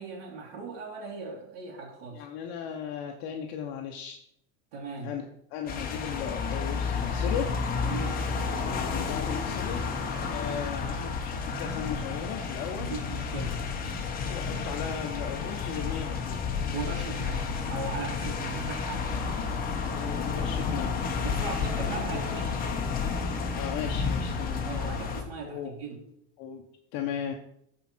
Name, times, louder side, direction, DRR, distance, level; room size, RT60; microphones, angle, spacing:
voice 1, 0.0-2.3 4.7-5.1 7.8-8.2 12.7-13.6 16.7-19.7 21.2-22.7 24.6-26.0, right 4 dB, 70° right, -5 dB, 2.8 m, -38 dB
voice 2, 2.1-4.2 5.0-5.2 5.5-7.5 8.8-9.8 10.3-12.9 14.3-16.4 19.9-21.2 23.5-24.7 25.4-25.7 26.4-26.6 26.9-27.3, left 8 dB, 55° left, 2 dB, 1.1 m, -36 dB
sound 1, 5.7-25.2, left 5 dB, 30° left, 1.4 m, -31 dB
14.0 x 4.9 x 4.5 m, 0.73 s
supercardioid pair, 135°, 31 cm